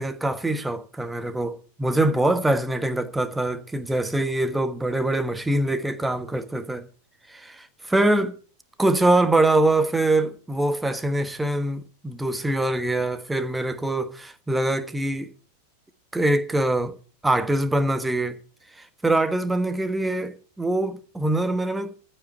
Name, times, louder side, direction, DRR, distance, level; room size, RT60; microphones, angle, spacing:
voice 1, 0.0-6.9 7.3-8.3 8.8-15.3 16.1-16.9 17.2-18.4 18.8-21.9, right 2 dB, 5° right, 1.3 m, -24 dB
15.0 x 5.6 x 9.1 m
figure-of-eight pair, 90°, 0 cm